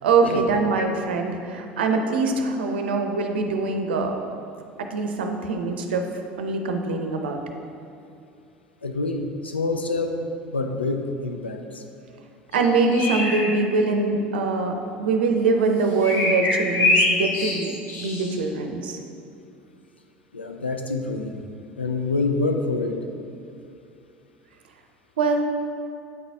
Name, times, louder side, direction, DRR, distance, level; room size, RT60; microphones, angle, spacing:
voice 1, 0.0-4.1 4.8-6.0 6.4-7.4 12.5-19.0 25.2-25.4, right 3 dB, 75° right, 4 dB, 0.6 m, -23 dB
voice 2, 8.8-10.2 10.4-11.8 20.3-21.4 21.8-23.0, left 3 dB, 90° left, 5 dB, 0.4 m, -26 dB
sound 1, 12.5-13.5 16.0-18.3, left 2 dB, 45° left, 1.1 m, -24 dB
8.7 x 4.0 x 3.4 m, 2.6 s
figure-of-eight pair, 70°, 6 cm